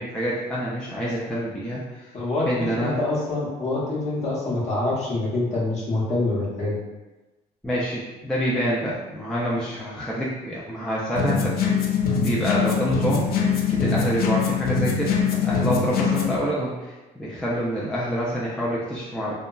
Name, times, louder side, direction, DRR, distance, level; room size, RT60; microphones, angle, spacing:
voice 1, 0.0-2.1 2.5-3.0 7.6-11.5 12.1-13.3 13.7-19.3, equal, 5° left, -7 dB, 0.4 m, -27 dB
voice 2, 2.1-6.7, left 2 dB, 40° left, -6 dB, 0.9 m, -26 dB
sound 1, 11.2-16.4, left 6 dB, 65° left, 0.4 m, -23 dB
2.8 x 2.2 x 2.3 m, 1.1 s
cardioid pair, 110°, 17 cm